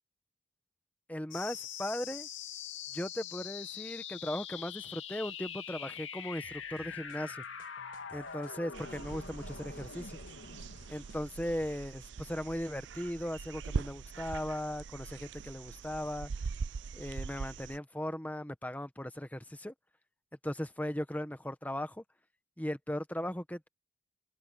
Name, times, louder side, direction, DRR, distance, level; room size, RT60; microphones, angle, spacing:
voice 1, 1.1-2.3 2.9-7.4 8.1-10.2 10.9-16.3 16.9-19.7 20.4-22.0 22.6-23.7, left 1 dB, 10° left, 1.1 m, -38 dB
sound 1, 1.3-12.3, left 8 dB, 70° left, 2.5 m, -44 dB
sound 2, 6.4-11.8, left 2 dB, 45° left, 4.9 m, -61 dB
sound 3, 8.7-17.8, right 5 dB, 60° right, 0.4 m, -42 dB
head